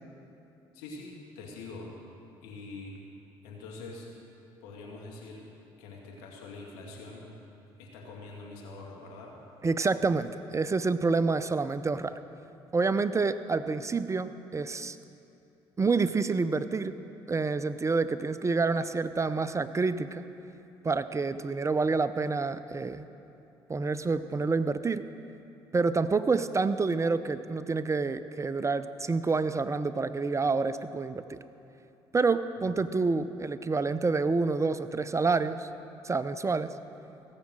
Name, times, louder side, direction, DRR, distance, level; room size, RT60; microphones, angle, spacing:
voice 1, 0.7-1.9 2.4-3.0 3.4-4.1 4.6-5.5 5.8-7.3 7.8-9.3, left 3 dB, 85° left, -1 dB, 2.2 m, -44 dB
voice 2, 9.6-12.1 12.7-15.0 15.8-17.0 17.3-20.2 20.8-23.1 23.7-25.0 25.7-31.4 32.1-35.7 36.0-36.7, right 4 dB, 25° right, 12 dB, 0.6 m, -28 dB
17.0 x 7.3 x 7.6 m, 2.8 s
hypercardioid pair, 55°, 11 cm